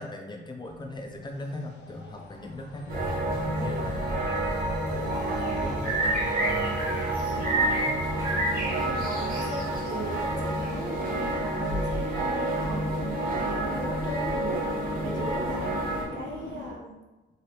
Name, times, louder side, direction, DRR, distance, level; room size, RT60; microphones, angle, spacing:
voice 1, 0.0-2.9 3.6-4.4 4.8-6.8 7.3-8.0, left 2 dB, 20° left, 3 dB, 0.5 m, -40 dB
sound 1, 0.6-16.7, left 3 dB, 65° left, 0.6 m, -41 dB
sound 2, 2.9-16.0, right 1 dB, 50° right, 1.1 m, -28 dB
voice 2, 3.5-3.9 4.9-6.1 7.4-8.2 8.5-14.6 15.0-17.0, right 3 dB, 70° right, -1 dB, 0.8 m, -39 dB
3.1 x 2.7 x 2.8 m, 1.1 s
cardioid pair, 90°, 20 cm